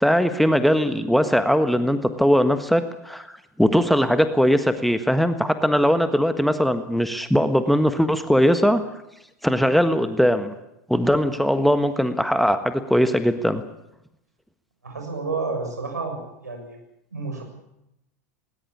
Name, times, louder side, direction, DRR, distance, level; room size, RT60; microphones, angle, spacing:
voice 1, 0.0-3.3 3.6-8.8 9.4-10.5 10.9-13.6, equal, ahead, 9 dB, 1.4 m, -20 dB
voice 2, 14.8-16.8 17.1-17.4, right 3 dB, 80° right, 3 dB, 6.9 m, -30 dB
19.5 x 19.5 x 8.6 m, 0.86 s
figure-of-eight pair, 85°, 9 cm